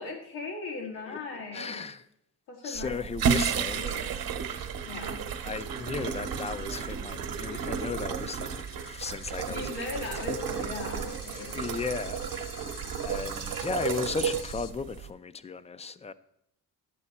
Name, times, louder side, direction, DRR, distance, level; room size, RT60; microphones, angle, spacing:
voice 1, 0.0-1.8 2.5-3.0 3.4-4.2 4.8-5.3 7.5-8.1 9.5-11.6, left 3 dB, 85° left, 1.9 m, -39 dB
voice 2, 1.5-2.0 2.6-3.8 5.4-10.1 11.5-12.7 13.0-16.1, left 5 dB, 20° left, 0.3 m, -36 dB
sound 1, 2.7-15.1, right 7 dB, 60° right, 1.0 m, -33 dB
sound 2, 8.4-14.7, left 9 dB, 55° left, 0.7 m, -49 dB
10.5 x 8.4 x 4.2 m
cardioid pair, 120°, 39 cm